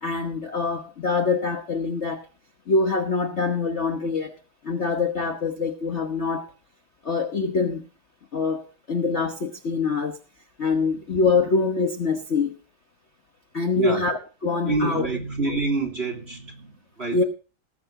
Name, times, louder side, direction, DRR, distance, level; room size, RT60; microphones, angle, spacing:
voice 1, 0.0-2.3 2.7-4.3 4.6-6.5 7.0-7.9 8.3-10.2 10.6-12.6 13.5-15.1 17.1-17.2, left 4 dB, 40° left, 1.2 m, -24 dB
voice 2, 14.6-17.2, right 2 dB, 30° right, 3.3 m, -27 dB
19.0 x 8.3 x 3.8 m
omnidirectional pair, 2.2 m